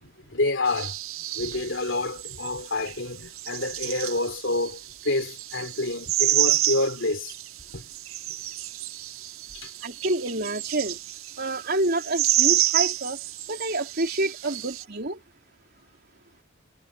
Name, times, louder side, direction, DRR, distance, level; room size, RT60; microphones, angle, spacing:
voice 1, 0.0-7.3 7.7-7.9 9.5-9.7, left 2 dB, 65° left, 3.6 m, -28 dB
sound 1, 0.7-14.8, right 14 dB, 85° right, 0.8 m, -29 dB
voice 2, 9.8-11.0 11.4-13.2 13.5-15.2, right 2 dB, 50° right, 3.6 m, -28 dB
head